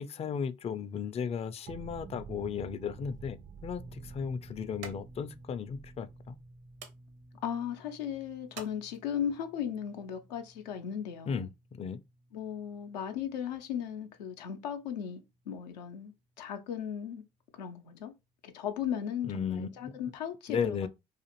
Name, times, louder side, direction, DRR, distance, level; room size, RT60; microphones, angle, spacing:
voice 1, 0.0-6.4 11.3-12.0 19.2-19.7 20.5-20.9, left 6 dB, 30° left, 0.4 m, -35 dB
sound 1, 1.7-7.4, right 7 dB, 40° right, 0.4 m, -49 dB
sound 2, 3.1-9.4, right 5 dB, 65° right, 0.8 m, -54 dB
sound 3, 3.8-16.0 16.3-16.5 18.2-18.3, right 1 dB, 85° right, 1.1 m, -56 dB
voice 2, 7.4-11.5 12.3-17.2 17.5-18.1 18.4-20.9, left 8 dB, 90° left, 0.4 m, -37 dB
2.4 x 2.4 x 2.9 m
hypercardioid pair, 50°, 21 cm